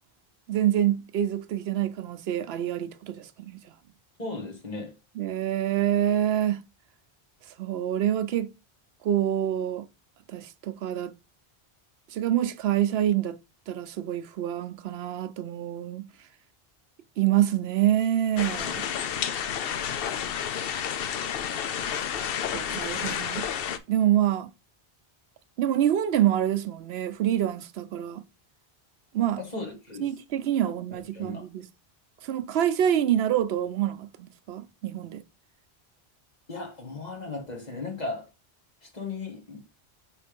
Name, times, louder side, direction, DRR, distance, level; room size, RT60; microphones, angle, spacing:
voice 1, 0.5-3.6 5.2-6.6 7.6-8.5 9.0-9.9 10.3-11.1 12.1-13.4 13.7-16.0 17.2-18.8 22.0-22.1 22.5-23.5 23.9-24.5 25.6-28.2 29.1-29.4 30.0-31.7 32.2-35.2, right 11 dB, 80° right, 0.8 m, -26 dB
voice 2, 4.2-4.9 29.4-30.1 31.1-31.4 36.5-38.3 38.8-39.6, left 3 dB, 40° left, 1.9 m, -36 dB
sound 1, 18.4-23.8, left 8 dB, 70° left, 0.8 m, -30 dB
5.0 x 4.1 x 5.1 m
omnidirectional pair, 1.0 m